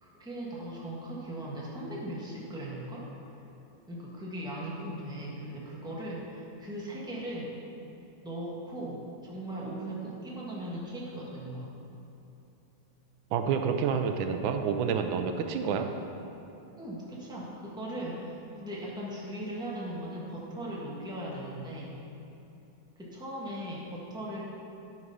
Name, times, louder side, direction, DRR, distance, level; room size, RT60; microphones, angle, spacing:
voice 1, 0.0-3.0 3.9-7.5 8.2-11.7 15.6-15.8 16.8-22.0 23.0-24.4, right 1 dB, ahead, -6 dB, 1.3 m, -38 dB
voice 2, 13.3-15.9, right 6 dB, 85° right, 6 dB, 1.4 m, -28 dB
9.4 x 6.0 x 5.5 m, 2.9 s
omnidirectional pair, 2.1 m